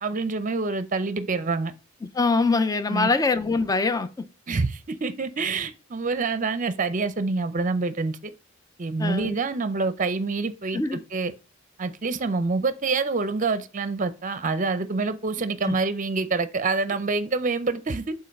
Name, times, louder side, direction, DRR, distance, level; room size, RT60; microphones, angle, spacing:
voice 1, 0.0-1.7 2.9-3.1 4.5-8.3 8.8-11.3 11.8-18.1, right 3 dB, 40° right, 0.6 m, -26 dB
voice 2, 2.2-4.1 9.0-9.4 10.7-11.0, left 3 dB, 20° left, 0.4 m, -23 dB
5.4 x 4.0 x 5.3 m
head